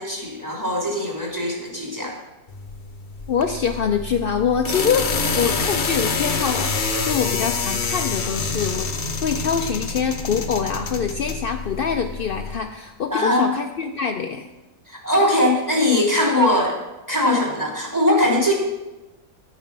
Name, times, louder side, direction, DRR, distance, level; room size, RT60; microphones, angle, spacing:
voice 1, 0.0-2.2 13.1-13.5 14.9-16.8 17.1-18.5, left 1 dB, 10° right, -1 dB, 2.9 m, -21 dB
sound 1, 2.5-12.6, left 4 dB, 40° left, 0.8 m, -27 dB
voice 2, 3.3-8.9 9.2-14.5, left 6 dB, 65° left, 5 dB, 0.5 m, -24 dB
11.0 x 9.1 x 6.0 m, 1.0 s
omnidirectional pair, 1.7 m